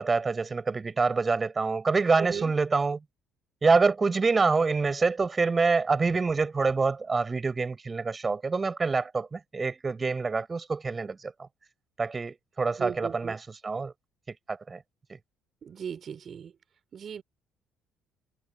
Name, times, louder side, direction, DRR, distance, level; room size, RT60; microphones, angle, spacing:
voice 1, 0.0-3.0 3.6-11.5 12.0-13.9 14.5-14.8, right 4 dB, 30° right, 5.6 m, -26 dB
voice 2, 2.2-2.5 12.8-13.4 15.6-16.5 16.9-17.2, right 7 dB, 50° right, 3.5 m, -37 dB
hypercardioid pair, 55°, 0 cm